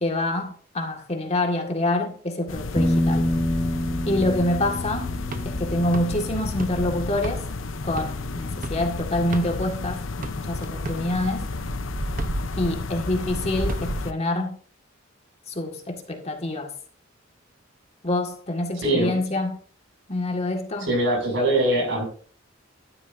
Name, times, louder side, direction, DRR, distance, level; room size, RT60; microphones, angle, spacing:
voice 1, 0.0-3.3 4.0-5.2 5.5-7.4 7.8-11.5 12.6-14.6 15.5-16.7 18.0-19.6 20.1-20.9, left 1 dB, 35° left, 1.9 m, -26 dB
sound 1, 2.5-14.1, left 3 dB, 75° left, 0.8 m, -32 dB
Bass guitar, 2.8-7.5 7.8-9.0, left 1 dB, 15° left, 0.8 m, -29 dB
sound 2, 4.8-9.8 10.2-14.1, right 1 dB, 40° right, 0.9 m, -34 dB
voice 2, 18.8-19.1 20.8-22.0, right 1 dB, 65° right, 6.6 m, -22 dB
13.5 x 11.0 x 2.7 m
head